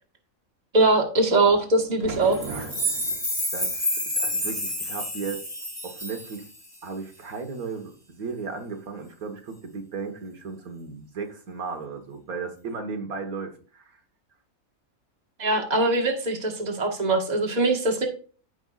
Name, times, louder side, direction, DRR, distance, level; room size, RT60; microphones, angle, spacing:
voice 1, 0.7-2.4 15.4-18.1, right 2 dB, 30° right, 2 dB, 1.5 m, -22 dB
sound 1, 1.4-3.3, right 4 dB, 60° right, 1.5 m, -37 dB
sound 2, 2.3-6.8, left 1 dB, 20° left, 2.3 m, -29 dB
voice 2, 2.5-3.0 3.5-5.4 5.8-6.5 6.8-14.0, right 4 dB, 80° right, 4 dB, 1.8 m, -36 dB
14.5 x 5.4 x 2.4 m, 0.39 s
omnidirectional pair, 1.5 m